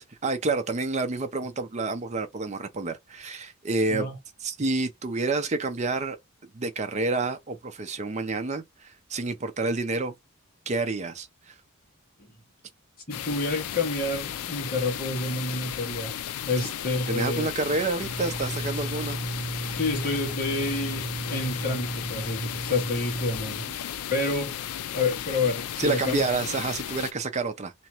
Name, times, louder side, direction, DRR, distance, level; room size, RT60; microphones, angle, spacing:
voice 1, 0.0-4.1 4.4-6.2 6.5-10.1 10.7-11.5 17.1-19.2 23.7-23.8 25.8-27.7, right 3 dB, 30° right, 0.6 m, -29 dB
sound 1, 13.1-27.1, left 10 dB, 90° left, 0.4 m, -35 dB
voice 2, 13.1-16.1 16.5-17.5 19.7-24.6 24.9-26.2, left 2 dB, 40° left, 1.8 m, -29 dB
sound 2, 18.0-23.4, right 2 dB, 15° left, 1.2 m, -35 dB
3.3 x 3.0 x 2.9 m
head